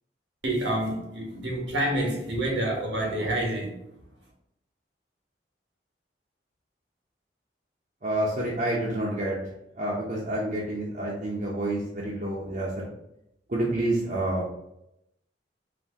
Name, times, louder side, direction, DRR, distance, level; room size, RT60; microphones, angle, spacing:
voice 1, 0.4-3.7, right 1 dB, 90° right, 1.2 m, -28 dB
voice 2, 8.0-9.4 9.8-12.7 13.5-14.5, right 1 dB, 45° right, 0.7 m, -28 dB
4.2 x 2.7 x 3.5 m
head